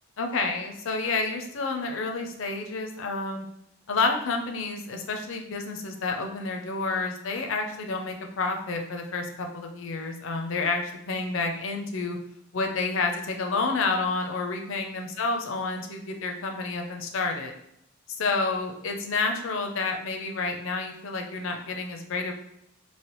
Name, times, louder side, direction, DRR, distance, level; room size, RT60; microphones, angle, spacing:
voice 1, 0.2-3.5 3.9-12.2 12.5-17.5 18.1-22.3, left 3 dB, 65° left, 3 dB, 0.5 m, -29 dB
3.2 x 2.7 x 3.0 m, 0.77 s
head